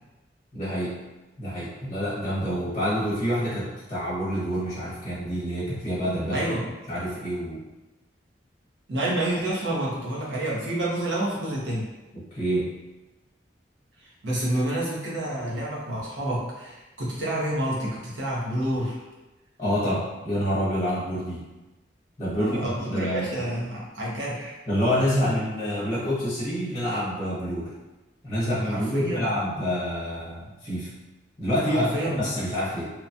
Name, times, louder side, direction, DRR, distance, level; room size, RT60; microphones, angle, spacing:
voice 1, 0.5-0.9 1.4-6.5 6.9-7.6 12.1-12.7 19.6-21.4 22.2-23.3 24.7-27.7 28.2-30.9 31.4-32.9, equal, 25° left, -9 dB, 0.8 m, -27 dB
voice 2, 6.3-6.6 8.9-11.9 14.0-19.0 22.4-24.6 28.6-29.3 31.7-32.2, right 1 dB, 85° right, -6 dB, 0.9 m, -29 dB
2.9 x 2.2 x 2.6 m, 1.1 s
head